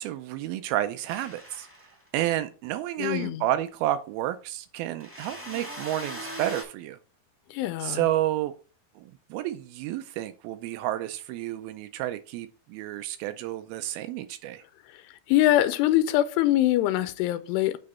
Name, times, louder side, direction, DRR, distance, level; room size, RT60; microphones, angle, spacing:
voice 1, 0.0-1.7 2.1-7.0 7.8-8.5 9.0-14.6, right 13 dB, 85° right, 2.2 m, -30 dB
sound 1, 1.1-2.1 5.0-6.6, right 1 dB, 10° right, 0.8 m, -39 dB
voice 2, 3.0-3.4 7.5-8.1 15.3-17.8, left 14 dB, 85° left, 2.7 m, -23 dB
8.6 x 3.9 x 4.2 m
omnidirectional pair, 4.7 m